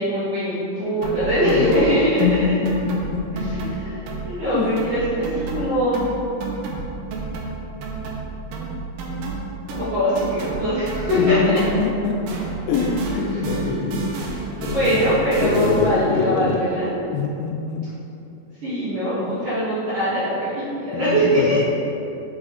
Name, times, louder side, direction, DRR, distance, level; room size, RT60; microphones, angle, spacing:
voice 1, 0.0-2.2 3.3-6.1 9.7-11.5 13.3-13.4 14.7-17.0 18.6-21.6, equal, 60° right, -11 dB, 1.7 m, -22 dB
sound 1, 1.0-4.5 4.8-12.0 12.3-16.0, right 3 dB, 75° right, 2.1 m, -31 dB
voice 2, 1.4-3.6 4.5-4.7 11.2-12.2 12.7-14.1 14.6-15.2 15.4-16.7 17.1-17.8 19.2-19.3 20.9-21.6, left 4 dB, 80° left, 1 dB, 2.2 m, -23 dB
6.7 x 4.8 x 3.6 m, 2.7 s
omnidirectional pair, 4.3 m